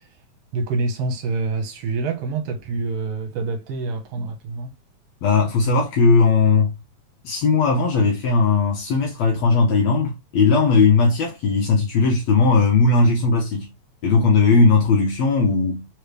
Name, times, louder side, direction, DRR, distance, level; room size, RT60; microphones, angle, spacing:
voice 1, 0.5-4.7, right 3 dB, 65° right, 2.0 m, -26 dB
voice 2, 5.2-6.7 7.2-13.7 14.0-15.9, left 4 dB, 70° left, 2.0 m, -18 dB
4.8 x 3.2 x 3.2 m
omnidirectional pair, 3.4 m